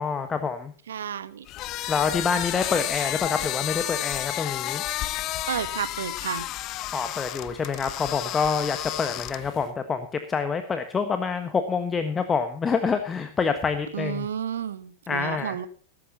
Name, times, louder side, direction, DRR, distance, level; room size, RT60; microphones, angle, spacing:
voice 1, 0.0-0.7 1.9-4.8 6.9-14.3 15.1-15.6, left 5 dB, 20° left, 8 dB, 1.3 m, -27 dB
voice 2, 0.9-1.5 5.5-6.5 13.9-15.7, right 8 dB, 65° right, 14 dB, 1.1 m, -31 dB
sound 1, 1.5-9.7, left 15 dB, 35° left, 0.7 m, -31 dB
17.5 x 14.5 x 2.9 m, 0.42 s
figure-of-eight pair, 90°, 0 cm